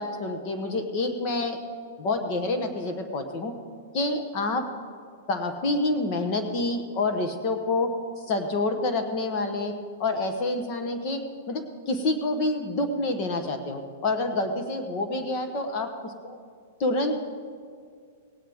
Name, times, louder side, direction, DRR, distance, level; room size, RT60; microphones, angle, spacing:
voice 1, 0.0-1.6 2.0-3.5 3.9-4.6 5.3-7.9 8.3-9.7 10.0-11.2 11.5-16.3 16.8-17.2, left 2 dB, 40° left, 6 dB, 1.1 m, -27 dB
18.5 x 9.4 x 3.5 m, 2.1 s
hypercardioid pair, 150°, 0 cm